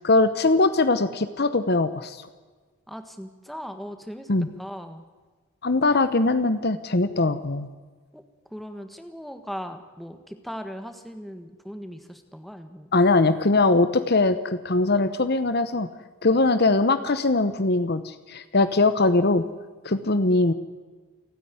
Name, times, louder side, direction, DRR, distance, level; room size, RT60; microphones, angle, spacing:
voice 1, 0.0-2.2 4.3-4.5 5.6-7.7 12.9-15.9 16.2-19.4 19.8-20.5, left 2 dB, 45° left, 12 dB, 0.9 m, -21 dB
voice 2, 2.9-5.0 8.1-8.2 8.5-12.9, equal, ahead, 7 dB, 1.4 m, -38 dB
28.5 x 10.0 x 9.4 m, 1.4 s
head